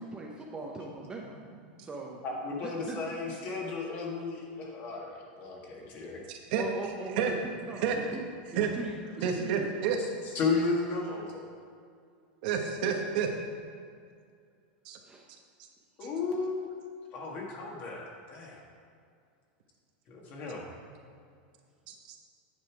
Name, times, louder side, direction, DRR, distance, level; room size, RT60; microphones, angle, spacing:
voice 1, 0.0-1.4 1.8-2.2 2.9-3.0 6.6-7.3 7.6-8.2 8.5-8.9 9.4-9.9 15.1-15.2, right 3 dB, 15° right, -1 dB, 0.7 m, -40 dB
voice 2, 2.2-6.2 10.3-11.5 16.0-16.6 17.1-18.6 20.1-20.7, left 4 dB, 40° left, -1 dB, 1.8 m, -34 dB
voice 3, 6.3-6.6 7.0-7.3 7.8-8.0 8.4-8.7 9.2-10.0 12.4-13.3 14.8-15.0 16.7-16.8 21.9-22.2, right 7 dB, 60° right, 3 dB, 1.1 m, -30 dB
9.3 x 5.6 x 4.8 m, 2.2 s
supercardioid pair, 145°, 5 cm